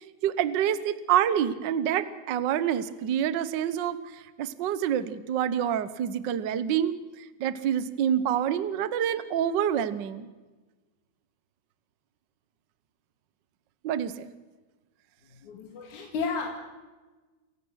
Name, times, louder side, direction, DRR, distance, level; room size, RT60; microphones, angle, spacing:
voice 1, 0.2-7.0 7.4-10.3 13.8-14.3, right 9 dB, 75° right, 14 dB, 1.0 m, -27 dB
voice 2, 15.3-16.6, left 4 dB, 75° left, 1 dB, 3.5 m, -33 dB
28.5 x 15.5 x 6.4 m, 1.2 s
omnidirectional pair, 3.5 m